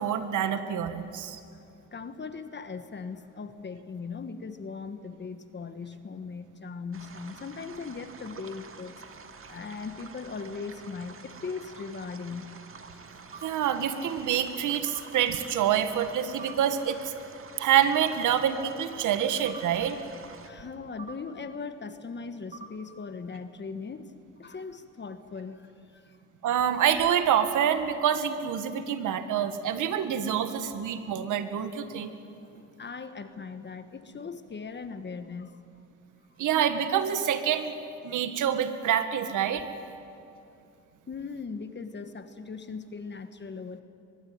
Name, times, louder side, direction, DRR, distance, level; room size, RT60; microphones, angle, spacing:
voice 1, 0.0-1.4 13.4-17.0 17.6-20.0 26.4-32.1 36.4-37.7 38.0-39.7, right 9 dB, 80° right, 10 dB, 1.8 m, -26 dB
voice 2, 1.9-8.9 9.5-12.5 20.4-26.2 32.4-35.6 41.1-43.8, left 5 dB, 35° left, 9 dB, 1.5 m, -39 dB
sound 1, 6.9-20.5, right 5 dB, 45° right, 2.4 m, -48 dB
sound 2, 13.3-13.5 14.9-15.0 16.4-16.6 17.9-18.1 19.5-19.6 21.0-21.2 22.5-22.7, right 5 dB, 25° right, 2.9 m, -43 dB
23.5 x 22.0 x 9.6 m, 2.6 s
cardioid pair, 90°, 30 cm